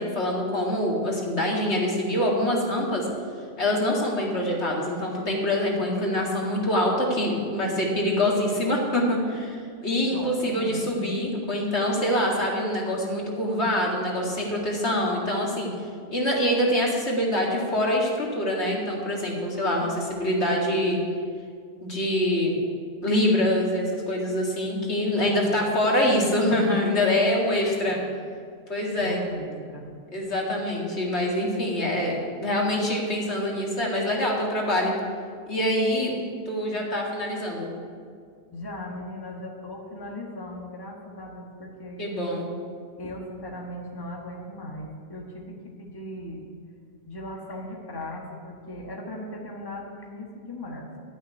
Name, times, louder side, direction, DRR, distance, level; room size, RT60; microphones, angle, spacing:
voice 1, 0.0-3.1 3.6-15.7 16.1-21.0 21.8-22.7 23.0-28.0 28.7-29.2 30.1-34.9 35.5-36.1 36.5-37.7 42.0-42.5, left 1 dB, 60° left, -2 dB, 2.3 m, -25 dB
voice 2, 10.1-10.8 19.8-20.3 25.1-26.2 27.3-28.1 29.0-29.9 38.5-42.1 43.0-46.4 47.0-50.9, left 1 dB, 20° left, -1 dB, 1.4 m, -38 dB
12.0 x 6.3 x 9.3 m, 2.1 s
omnidirectional pair, 1.3 m